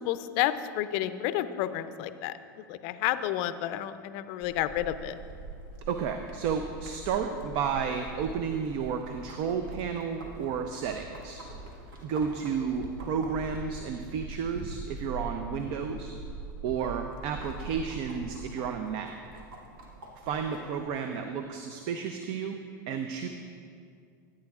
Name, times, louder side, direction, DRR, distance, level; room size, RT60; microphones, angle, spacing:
voice 1, 0.0-2.3 2.7-5.2, left 13 dB, 55° left, 12 dB, 0.5 m, -30 dB
sound 1, 4.4-20.8, right 3 dB, 75° right, 1.5 m, -43 dB
voice 2, 5.9-11.4 12.0-16.1 16.6-19.4 20.2-22.6 22.9-23.3, right 6 dB, 50° right, 6 dB, 0.6 m, -32 dB
14.0 x 8.8 x 2.4 m, 2.3 s
hypercardioid pair, 100°, 11 cm